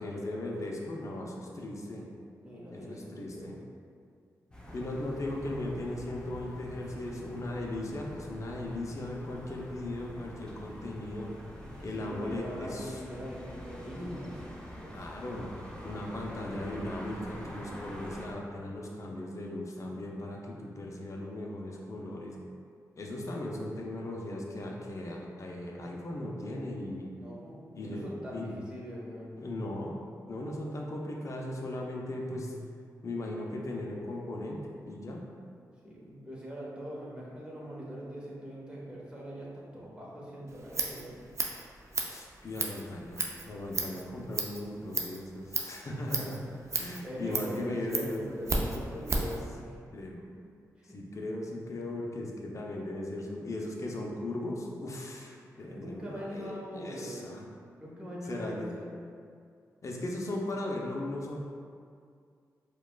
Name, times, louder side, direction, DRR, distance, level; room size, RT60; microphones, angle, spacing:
voice 1, 0.0-2.0 2.7-3.6 4.7-11.3 11.8-12.9 14.9-15.5 15.8-22.4 22.9-27.1 27.7-28.6 29.4-30.0 30.3-32.6 33.0-35.3 42.1-46.4 46.8-48.4 49.9-50.2 50.8-57.4 58.3-58.7 59.8-61.4, left 1 dB, 50° left, -1 dB, 0.6 m, -37 dB
voice 2, 2.4-3.5 6.9-7.5 10.8-10.9 11.6-15.0 27.2-29.3 35.8-41.2 45.8-46.4 47.0-50.0 50.3-50.4 50.8-51.0 55.5-57.3 57.8-58.9, equal, 15° right, -6 dB, 1.0 m, -42 dB
sound 1, 4.5-18.3, equal, 15° left, 0.7 m, -45 dB
Scissors, 40.5-49.4, right 3 dB, 45° right, 0.5 m, -35 dB
4.7 x 2.3 x 2.3 m, 2.3 s
cardioid pair, 50°, 7 cm